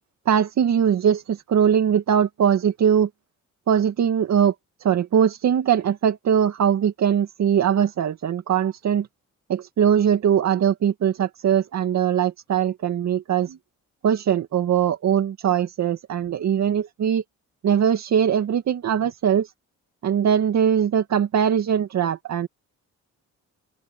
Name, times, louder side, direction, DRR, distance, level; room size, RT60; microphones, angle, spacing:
voice 1, 0.3-3.1 3.7-4.5 4.8-9.1 9.5-13.6 14.0-17.2 17.6-19.5 20.0-22.5, right 8 dB, 65° right, 2.4 m, -21 dB
open air
cardioid pair, 90°, 30 cm